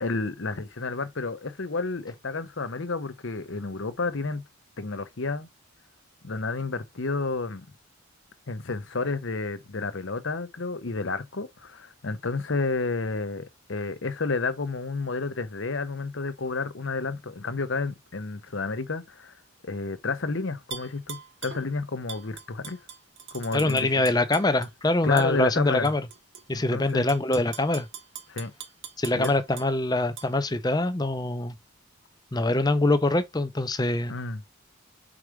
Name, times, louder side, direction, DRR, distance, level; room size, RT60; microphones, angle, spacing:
voice 1, 0.0-4.4 4.8-5.5 6.2-7.7 8.5-19.3 19.6-22.8 23.3-23.9 25.0-25.9 26.7-27.1 28.3-28.5 29.1-29.3 34.1-34.4, left 3 dB, 55° left, 0.8 m, -31 dB
Tap / Glass, 20.7-21.6 22.1-24.7 25.2-25.3 25.8-26.4 26.9-29.7 30.2-30.3, right 8 dB, 60° right, 1.5 m, -41 dB
voice 2, 23.5-26.0 26.5-27.9 29.0-31.6 32.3-34.1, left 2 dB, 20° left, 0.6 m, -24 dB
4.9 x 4.9 x 4.7 m
head